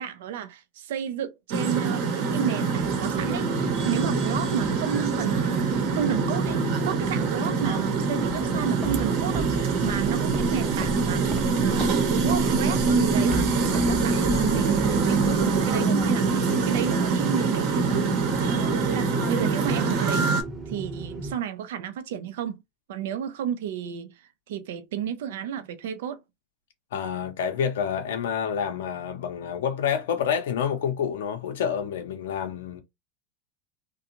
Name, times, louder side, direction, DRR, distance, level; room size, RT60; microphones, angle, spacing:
voice 1, 0.0-9.5 9.8-11.3 11.6-13.4 13.7-20.3 20.7-22.6 22.9-26.2, right 9 dB, 75° right, 0.4 m, -32 dB
sound 1, 1.5-20.4, right 4 dB, 60° right, 0.8 m, -25 dB
sound 2, 2.7-21.3, right 1 dB, 20° right, 0.9 m, -34 dB
Walk footsteps, 8.2-16.1, left 1 dB, ahead, 0.5 m, -35 dB
voice 2, 26.9-32.8, left 8 dB, 80° left, 0.6 m, -28 dB
2.5 x 2.2 x 2.9 m
hypercardioid pair, 100°, 0 cm